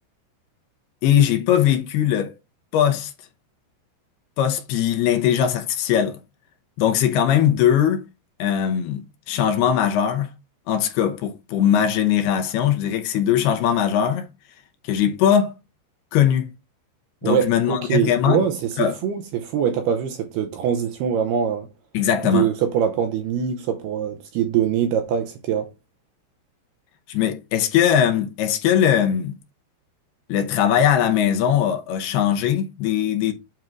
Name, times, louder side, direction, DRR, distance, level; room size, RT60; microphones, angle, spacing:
voice 1, 1.0-2.3 2.7-3.1 4.4-6.2 6.8-8.1 8.4-10.3 10.7-14.3 14.8-15.5 16.1-16.5 17.2-18.4 18.8-19.0 21.9-22.5 27.1-29.4 30.3-33.3, left 9 dB, 75° left, 2.6 m, -20 dB
voice 2, 17.2-21.7 22.3-25.7, right 8 dB, 75° right, 2.5 m, -23 dB
9.1 x 3.6 x 3.8 m
omnidirectional pair, 5.3 m